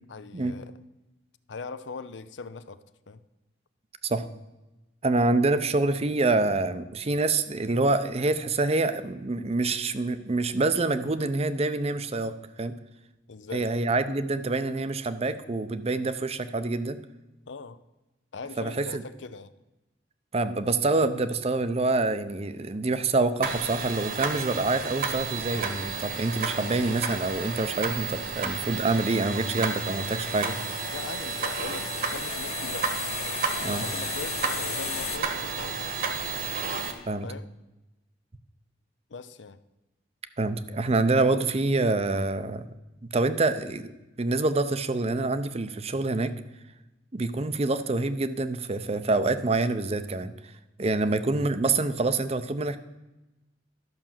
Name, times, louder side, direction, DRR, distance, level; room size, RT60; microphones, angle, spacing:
voice 1, 0.1-0.8 1.5-3.2 13.3-13.7 17.5-17.8 18.3-19.5 30.9-32.9 33.7-36.0 37.2-37.5 39.1-39.6 50.8-51.0, left 4 dB, 75° left, 0.6 m, -41 dB
voice 2, 5.0-12.7 13.5-17.0 18.6-19.0 20.3-30.6 33.6-33.8 37.1-37.3 40.4-42.6 43.0-43.9 44.2-46.3 47.1-50.5 50.8-52.8, right 3 dB, 35° right, 0.6 m, -26 dB
sound 1, 23.4-36.9, right 5 dB, 50° right, 1.4 m, -32 dB
sound 2, 29.5-35.2, left 9 dB, 35° left, 0.6 m, -36 dB
12.5 x 6.2 x 7.3 m
head